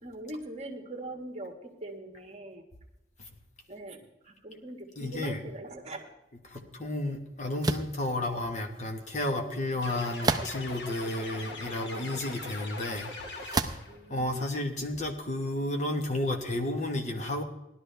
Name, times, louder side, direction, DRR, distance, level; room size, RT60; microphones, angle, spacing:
voice 1, 0.0-2.6 3.7-6.0 13.8-14.4, right 2 dB, 40° right, 3 dB, 1.6 m, -42 dB
voice 2, 5.0-5.4 6.4-13.1 13.4-13.8 14.1-17.4, left 1 dB, 40° left, 4 dB, 1.4 m, -32 dB
sound 1, 7.6-8.0 10.2-10.8 11.5-11.6 13.5-13.9, right 3 dB, 20° right, 0.7 m, -29 dB
sound 2, 9.8-14.0, left 2 dB, 75° left, 2.1 m, -40 dB
18.5 x 12.0 x 3.4 m, 0.90 s
head